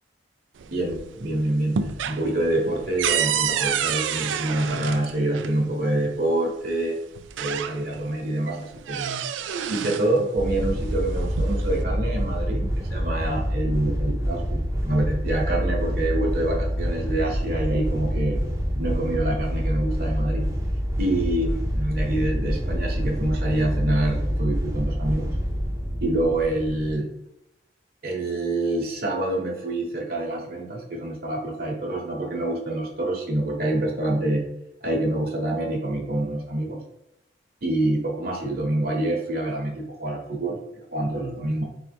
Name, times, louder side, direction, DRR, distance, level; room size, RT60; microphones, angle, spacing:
sound 1, 0.6-1.2 1.5-5.6 6.6-6.7 7.2-8.1 8.5-10.1 11.0-11.8, right 8 dB, 85° right, 0.4 m, -28 dB
voice 1, 0.7-7.0 7.4-9.2 9.7-18.4 18.7-20.5 21.0-25.3 26.0-27.1 28.0-34.5 34.8-36.8 37.6-41.6, right 1 dB, 50° right, 0 dB, 1.0 m, -26 dB
sound 2, 10.4-26.9, equal, 15° right, 0.7 m, -26 dB
4.1 x 3.1 x 3.4 m, 0.82 s
head